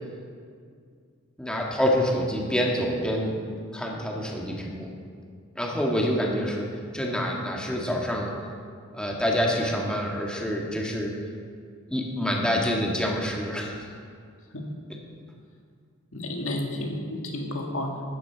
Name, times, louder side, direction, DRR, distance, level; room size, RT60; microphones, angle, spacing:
voice 1, 1.4-3.4 3.7-4.9 5.5-6.6 6.9-8.3 8.9-11.1 11.9-13.7, equal, 5° left, -2 dB, 1.7 m, -26 dB
voice 2, 16.1-18.0, left 1 dB, 70° left, 1 dB, 1.9 m, -31 dB
15.5 x 12.5 x 4.6 m, 2.1 s
head